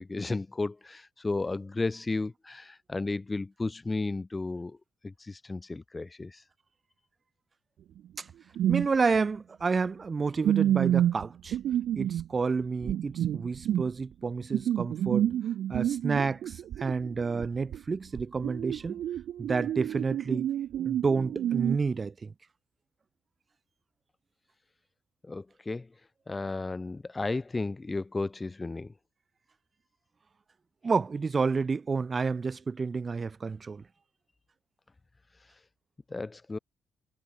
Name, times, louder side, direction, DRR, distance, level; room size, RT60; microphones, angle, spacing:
voice 1, 0.0-4.8 5.0-6.4 25.2-25.9 26.3-28.9 36.1-36.6, left 3 dB, 20° left, 0.8 m, -33 dB
sound 1, 8.6-8.9 9.2-9.3 10.4-12.3 12.8-13.9 14.5-17.8 18.1-21.8, right 11 dB, 70° right, 1.7 m, -29 dB
voice 2, 8.7-11.6 11.9-15.3 15.7-19.0 19.4-20.6 20.8-22.3 30.8-33.8, right 4 dB, 30° right, 2.7 m, -30 dB
cardioid pair, 110°, 0 cm